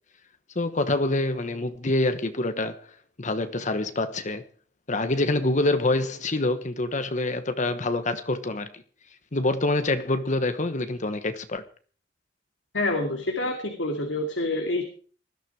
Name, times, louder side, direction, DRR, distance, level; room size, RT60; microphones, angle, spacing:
voice 1, 0.5-2.8 3.2-4.4 4.9-8.7 9.3-11.6, left 2 dB, 45° left, 1.1 m, -26 dB
voice 2, 12.7-14.8, left 2 dB, 90° left, 2.6 m, -27 dB
20.0 x 12.5 x 4.8 m
head